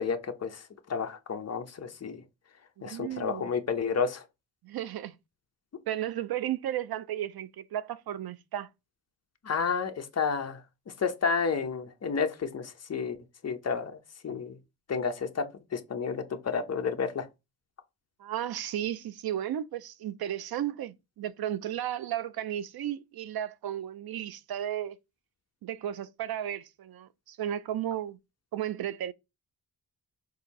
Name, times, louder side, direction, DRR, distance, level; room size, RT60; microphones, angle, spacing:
voice 1, 0.0-2.2 2.8-4.2 9.4-10.6 11.0-13.2 13.4-14.0 14.2-14.6 14.9-15.4 15.7-17.3, left 5 dB, 45° left, 1.0 m, -31 dB
voice 2, 2.8-3.5 4.6-5.1 5.9-8.7 18.2-25.0 25.6-28.2 28.5-29.1, right 11 dB, 85° right, 0.6 m, -34 dB
6.6 x 2.8 x 5.3 m
wide cardioid pair, 170°, 36 cm